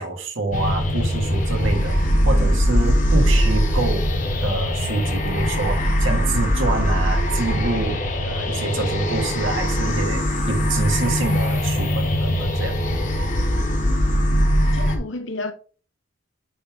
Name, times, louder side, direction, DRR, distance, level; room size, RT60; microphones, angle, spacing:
voice 1, 0.0-4.1 4.4-8.0 8.2-12.8, right 2 dB, 80° right, 1.8 m, -26 dB
sound 1, 0.5-15.0, equal, 40° left, 1.2 m, -21 dB
voice 2, 14.6-15.5, left 2 dB, 70° left, 1.0 m, -31 dB
9.9 x 3.6 x 3.5 m
head